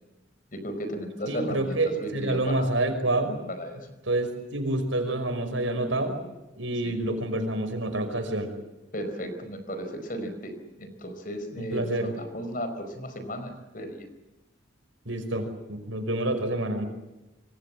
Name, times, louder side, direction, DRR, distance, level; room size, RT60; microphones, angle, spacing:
voice 1, 0.5-1.7 2.0-2.7 3.5-3.8 6.8-7.0 8.9-14.1, equal, 45° left, 8 dB, 4.8 m, -35 dB
voice 2, 1.3-3.4 4.1-6.2 6.6-8.5 11.6-12.1 15.1-16.8, right 2 dB, 85° right, 7 dB, 5.7 m, -28 dB
27.0 x 25.0 x 7.7 m, 1.0 s
head